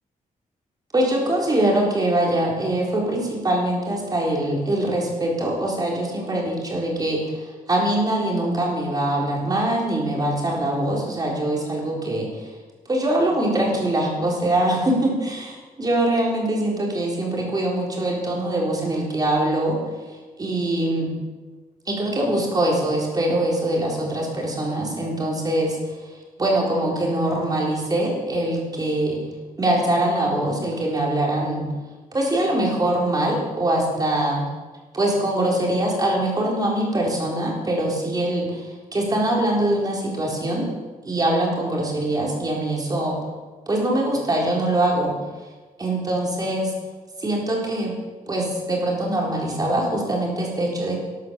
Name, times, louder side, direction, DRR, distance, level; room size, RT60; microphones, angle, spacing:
voice 1, 0.9-12.5 12.9-19.8 20.4-21.1 21.9-25.8 26.4-29.2 29.6-31.6 32.1-34.4 34.9-40.7 41.0-43.2 43.7-45.1 45.8-46.7 47.2-47.9 48.3-51.0, right 1 dB, 25° right, -2 dB, 4.1 m, -23 dB
12.5 x 11.5 x 7.0 m, 1.3 s
wide cardioid pair, 140°, 15 cm